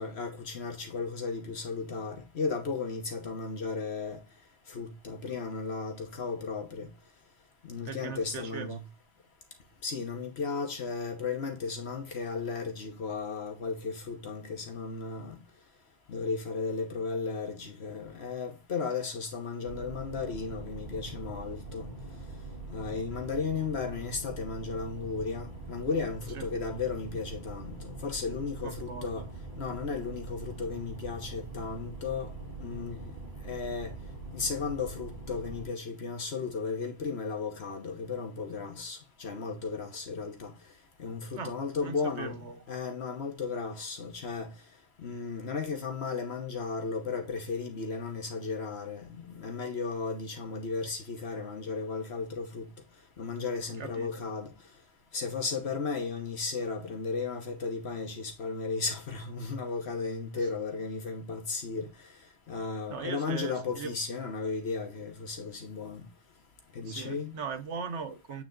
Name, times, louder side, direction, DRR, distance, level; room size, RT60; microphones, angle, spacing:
voice 1, 0.0-4.2 4.7-6.9 7.6-8.8 9.8-15.4 16.1-21.9 22.7-29.3 29.6-32.3 32.6-33.1 33.4-33.9 34.3-40.5 41.0-42.4 42.7-44.5 45.0-52.6 53.2-54.5 55.1-61.9 62.5-66.0 66.7-67.4, left 4 dB, 70° left, 1.4 m, -35 dB
voice 2, 7.8-8.8 26.3-26.4 28.6-29.2 41.4-41.5 41.8-42.6 53.8-54.1 62.9-63.9 66.9-68.4, right 5 dB, 85° right, 1.3 m, -39 dB
sound 1, 19.7-35.7, right 2 dB, 55° right, 3.1 m, -43 dB
8.6 x 3.4 x 3.8 m
omnidirectional pair, 1.2 m